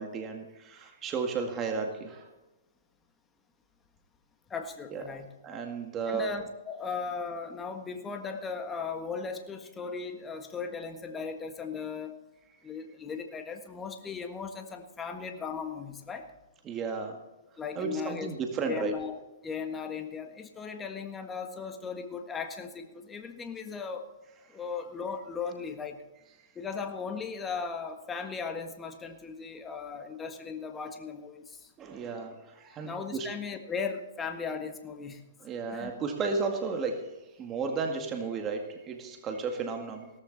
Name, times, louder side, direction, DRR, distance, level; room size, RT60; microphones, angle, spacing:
voice 1, 0.0-2.3 4.9-5.0 5.4-6.3 16.7-17.2 17.8-18.9 31.8-33.3 35.4-37.1 37.4-40.1, right 4 dB, 25° right, 4 dB, 2.0 m, -33 dB
voice 2, 4.5-5.3 6.1-12.2 12.6-16.3 17.6-18.3 18.6-24.1 24.5-26.0 26.5-31.7 32.8-35.2 35.7-35.9, left 5 dB, 15° left, 5 dB, 1.6 m, -37 dB
17.5 x 14.0 x 4.1 m, 1.1 s
hypercardioid pair, 135°, 0 cm